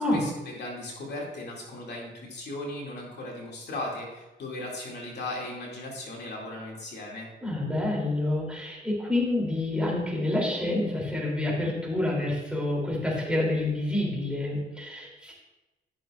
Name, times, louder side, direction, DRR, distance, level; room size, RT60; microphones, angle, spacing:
voice 1, 0.0-7.3, left 2 dB, 55° left, -2 dB, 2.5 m, -37 dB
voice 2, 7.4-15.3, left 1 dB, 5° right, -3 dB, 3.1 m, -28 dB
13.0 x 6.7 x 2.5 m, 1.1 s
cardioid pair, 90°, 20 cm